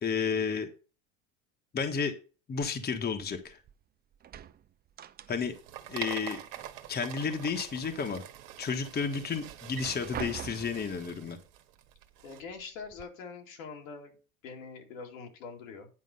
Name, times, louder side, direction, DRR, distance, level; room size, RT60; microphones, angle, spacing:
voice 1, 0.0-0.7 1.7-2.1 2.5-3.6 5.3-5.5 5.9-6.4 6.9-8.2 8.6-11.4, left 6 dB, 25° left, 6 dB, 1.3 m, -32 dB
sound 1, 3.3-3.8 4.1-5.7 6.0-7.0 7.4-8.2 8.7-8.8 9.5-10.9 11.9-12.0 12.4-13.0, right 10 dB, 25° right, 0.5 m, -44 dB
sound 2, 5.2-12.4, right 11 dB, 60° right, 1.5 m, -45 dB
voice 2, 12.2-14.2 14.4-15.9, left 5 dB, 80° left, 2 dB, 2.6 m, -44 dB
9.9 x 5.0 x 5.4 m, 0.35 s
supercardioid pair, 105°, 40 cm